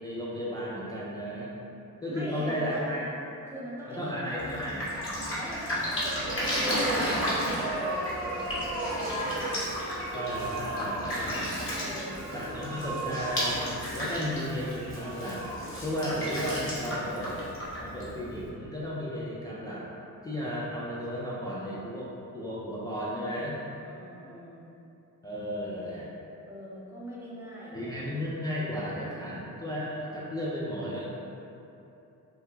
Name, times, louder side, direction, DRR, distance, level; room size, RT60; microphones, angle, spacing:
voice 1, 0.0-1.5 2.0-3.1 3.9-4.9 10.1-11.5 12.3-13.6 13.9-15.5 15.8-17.4 17.8-19.9 20.2-23.6 25.2-26.1 27.7-31.3, equal, 10° left, -7 dB, 0.3 m, -34 dB
voice 2, 2.1-3.0 3.5-4.6 5.3-9.6 11.8-12.2 23.8-24.7 26.5-27.9, equal, 5° right, -8 dB, 0.7 m, -42 dB
Drip, 4.4-18.5, equal, 30° left, 1.0 m, -34 dB
sound 1, 5.8-16.8, right 1 dB, 35° right, 0.9 m, -36 dB
2.2 x 2.1 x 3.1 m, 2.9 s
hypercardioid pair, 40°, 43 cm